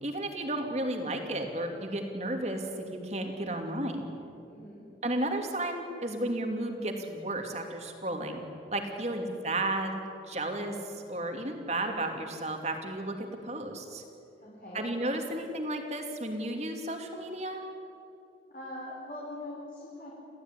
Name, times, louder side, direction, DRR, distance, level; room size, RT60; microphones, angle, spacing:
voice 1, 0.0-4.1 5.0-8.4 8.7-10.0 10.3-14.0 14.7-17.6, right 1 dB, 35° right, 4 dB, 2.8 m, -33 dB
voice 2, 4.4-4.8 8.9-9.3 14.4-14.9 18.5-20.1, left 1 dB, 50° left, -5 dB, 5.1 m, -43 dB
27.5 x 16.0 x 9.9 m, 2.8 s
head